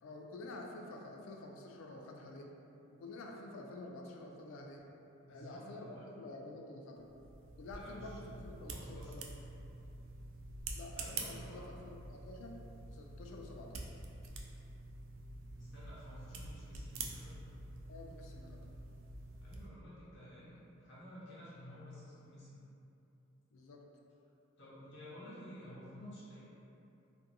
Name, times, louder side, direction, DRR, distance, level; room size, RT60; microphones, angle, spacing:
voice 1, 0.0-2.5 2.9-4.8 5.3-7.1 7.6-9.2 10.8-12.6 12.9-13.9 17.9-18.6 23.5-23.8, left 2 dB, 85° left, 1 dB, 0.3 m, -49 dB
voice 2, 5.2-6.0 7.7-9.2 11.0-11.7 15.5-17.3 18.6-18.7 19.4-22.6 24.6-26.4, equal, 60° left, -9 dB, 0.9 m, -52 dB
sound 1, 7.0-19.7, right 3 dB, 80° right, 0.3 m, -47 dB
2.6 x 2.5 x 2.6 m, 2.8 s
head